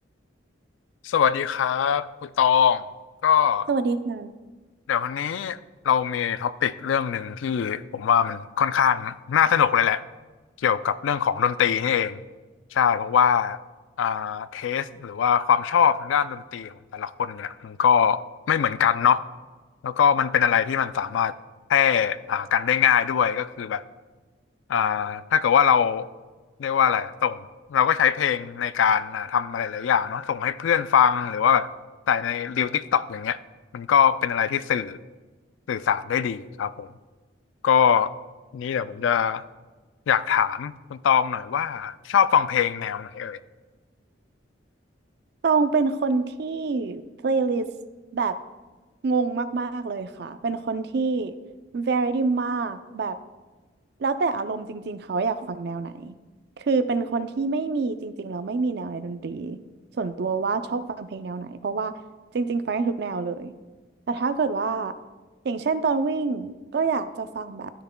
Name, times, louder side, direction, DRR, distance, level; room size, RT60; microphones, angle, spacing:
voice 1, 1.0-2.8 3.2-3.7 4.9-5.6 5.8-10.0 10.6-12.2 12.7-13.6 14.0-18.2 18.5-19.2 19.8-21.3 21.7-23.8 24.7-26.1 26.6-31.7 32.1-33.4 33.7-35.0 35.7-36.9 37.6-38.1 38.5-39.4 40.1-43.4, left 8 dB, 80° left, 15 dB, 0.3 m, -22 dB
voice 2, 3.7-4.3 45.4-47.7 48.1-48.4 49.0-51.4 51.7-53.2 54.0-56.1 56.6-59.6 60.0-61.9 62.3-63.5 64.1-64.9 65.4-67.7, right 4 dB, 55° right, 11 dB, 0.4 m, -26 dB
12.5 x 6.6 x 2.2 m, 1.3 s
head